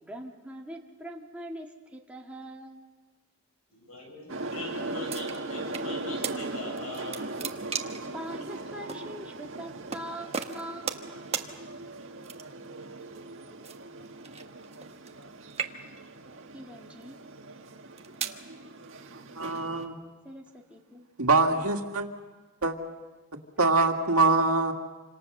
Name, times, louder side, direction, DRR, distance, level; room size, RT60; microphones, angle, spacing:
voice 1, 0.0-2.8 8.0-11.1 16.5-17.2 20.2-21.1, right 1 dB, 5° right, -1 dB, 2.0 m, -42 dB
voice 2, 3.7-7.3, left 2 dB, 80° left, 1 dB, 7.4 m, -41 dB
sound 1, 4.3-19.9, right 2 dB, 60° right, 1.8 m, -39 dB
sound 2, 5.1-5.9 6.2-6.4 6.8-8.1 8.9-9.0 9.9-10.1 10.3-11.1 11.3-11.5 12.2-12.7 13.6-15.2 15.5-16.1 16.8-17.0 17.7-18.4, right 6 dB, 30° right, 1.2 m, -35 dB
voice 3, 19.3-20.0 21.2-22.1 22.6-22.8 23.6-24.7, right 3 dB, 90° right, 4 dB, 2.2 m, -24 dB
28.0 x 26.5 x 6.7 m, 1.3 s
head